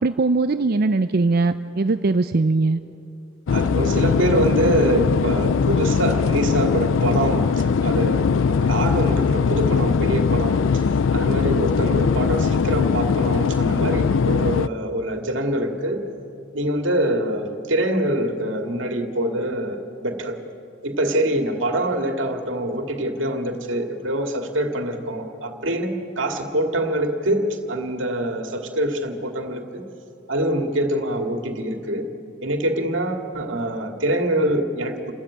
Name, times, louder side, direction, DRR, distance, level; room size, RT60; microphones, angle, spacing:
voice 1, 0.0-2.8, right 3 dB, 50° right, 10 dB, 0.5 m, -20 dB
sound 1, 3.5-14.7, left 5 dB, 75° left, 0.4 m, -20 dB
voice 2, 3.5-10.9 11.1-16.0 16.5-20.4 20.8-29.8 30.3-32.1 32.4-35.1, right 1 dB, 70° right, 4 dB, 2.2 m, -24 dB
28.5 x 13.5 x 8.6 m, 2.6 s
head